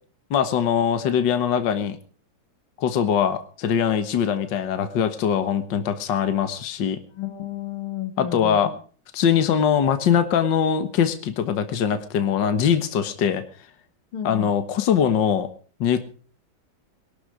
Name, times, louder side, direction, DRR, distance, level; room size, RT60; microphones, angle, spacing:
voice 1, 0.3-2.0 2.8-7.0 8.2-8.7 9.1-13.4 14.2-15.5 15.8-16.0, left 8 dB, 60° left, 9 dB, 1.9 m, -22 dB
voice 2, 7.2-8.8 14.1-14.5, left 11 dB, 85° left, 9 dB, 2.7 m, -32 dB
21.5 x 12.0 x 4.9 m, 0.43 s
omnidirectional pair, 2.3 m